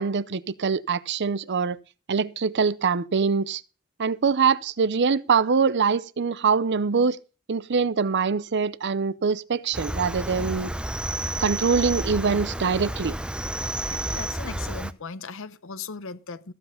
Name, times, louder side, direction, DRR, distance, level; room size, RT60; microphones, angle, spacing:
voice 1, 0.0-1.8 2.1-3.6 4.0-7.2 7.5-10.7 11.4-13.2, right 5 dB, 55° right, 0.6 m, -24 dB
Cricket, 9.7-14.9, right 1 dB, 5° right, 0.6 m, -31 dB
voice 2, 13.9-16.5, left 5 dB, 65° left, 0.9 m, -38 dB
14.5 x 8.0 x 5.6 m
head